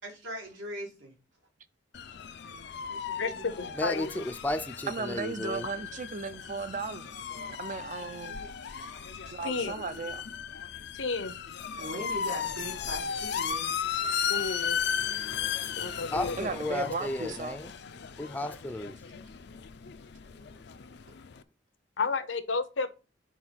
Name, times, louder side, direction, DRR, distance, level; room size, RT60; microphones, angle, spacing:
voice 1, 0.0-1.1 2.9-3.8 8.0-8.5 9.1-9.2 11.8-13.8 14.4-14.7 15.1-15.3 21.1-21.2, right 1 dB, 80° right, 2.3 m, -41 dB
sound 1, 1.9-21.4, left 7 dB, 60° left, 0.5 m, -36 dB
voice 2, 3.2-4.2 9.4-9.7 10.9-11.3 14.3-14.8 15.8-16.4 22.0-22.9, left 4 dB, 80° left, 0.8 m, -32 dB
voice 3, 3.7-5.7 16.1-17.7 18.2-19.0, left 1 dB, 10° left, 0.4 m, -34 dB
voice 4, 4.9-7.1 7.5-8.4 9.3-10.2 15.6-15.8 16.4-17.6, right 4 dB, 40° right, 0.5 m, -36 dB
4.6 x 4.3 x 5.7 m
head